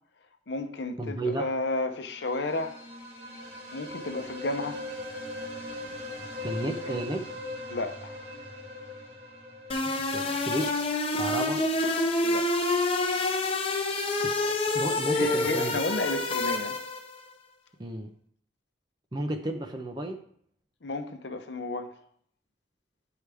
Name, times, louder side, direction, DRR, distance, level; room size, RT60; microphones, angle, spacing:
voice 1, 0.5-2.9 3.7-4.8 6.6-7.0 7.7-8.2 12.2-12.8 15.1-16.8 20.8-22.0, left 2 dB, 65° left, 0.8 m, -32 dB
voice 2, 1.0-1.5 6.4-7.2 10.1-10.9 11.1-11.6 14.2-15.8 17.8-18.1 19.1-20.2, right 1 dB, 25° right, 0.6 m, -33 dB
sound 1, 2.1-10.9, left 1 dB, 60° right, 2.2 m, -40 dB
sound 2, 9.7-17.1, left 2 dB, 30° left, 0.8 m, -27 dB
11.0 x 4.8 x 3.5 m
head